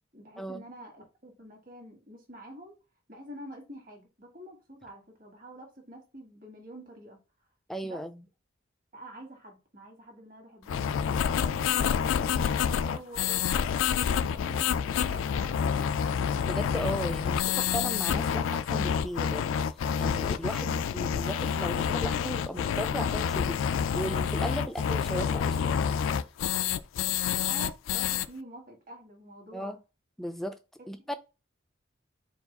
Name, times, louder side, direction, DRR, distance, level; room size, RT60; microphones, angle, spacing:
voice 1, 0.1-2.7 3.1-7.2 7.8-8.0 8.9-15.6 27.4-29.7 30.8-30.9, right 1 dB, 45° right, 1.7 m, -47 dB
voice 2, 7.7-8.2 16.4-26.0 29.5-29.8 30.2-30.6 30.9-31.1, equal, ahead, 0.3 m, -36 dB
sound 1, 10.7-28.3, left 8 dB, 90° left, 0.3 m, -28 dB
4.6 x 2.4 x 4.0 m
head